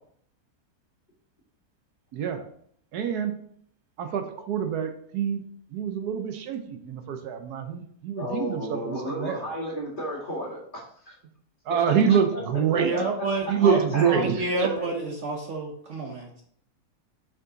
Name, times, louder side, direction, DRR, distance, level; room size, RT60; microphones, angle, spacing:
voice 1, 2.1-2.4 2.9-3.3 4.0-5.4 5.7-9.5 11.6-12.9 13.5-14.7, right 7 dB, 75° right, 7 dB, 1.3 m, -26 dB
voice 2, 8.2-11.1 11.9-12.0 12.3-12.4 12.7-14.9, left 1 dB, 30° left, -5 dB, 2.4 m, -34 dB
voice 3, 12.7-13.8 14.1-16.4, right 2 dB, 55° right, 1 dB, 1.0 m, -29 dB
6.2 x 5.4 x 3.9 m, 0.63 s
omnidirectional pair, 1.7 m